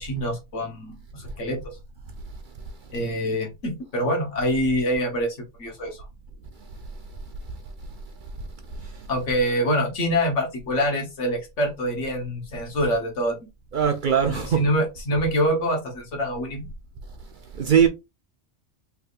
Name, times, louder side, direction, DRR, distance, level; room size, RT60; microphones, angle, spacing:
voice 1, 0.0-1.6 2.9-5.3 5.6-6.0 9.1-13.4 14.3-16.7, equal, 80° left, 1.6 m, -25 dB
voice 2, 13.7-14.7 17.5-17.9, right 8 dB, 55° right, 0.6 m, -21 dB
3.4 x 3.4 x 2.5 m
omnidirectional pair, 1.2 m